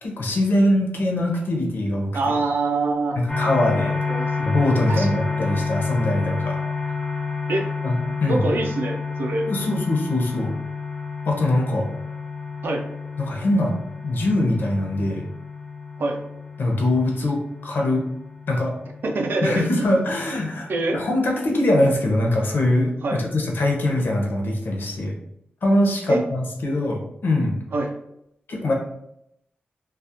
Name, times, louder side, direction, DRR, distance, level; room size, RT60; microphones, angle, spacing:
voice 1, 0.0-2.3 3.2-4.0 4.4-6.6 7.8-8.5 9.5-10.5 11.3-11.8 13.2-13.7 14.0-15.2 16.6-18.0 18.5-18.7 19.4-25.1 25.6-27.6 28.5-28.7, left 1 dB, 65° left, 0 dB, 0.6 m, -22 dB
voice 2, 2.1-3.2 4.1-4.3 4.9-5.1 7.5-7.7 8.3-9.5 12.6-12.8 16.0-16.2 19.0-19.7 20.7-21.0 23.0-23.2 26.1-26.2 27.7-27.9, right 2 dB, 70° right, 2 dB, 0.4 m, -24 dB
sound 1, 3.3-21.0, left 4 dB, 15° left, 0.4 m, -30 dB
2.3 x 2.1 x 2.7 m, 0.78 s
wide cardioid pair, 155°, 4 cm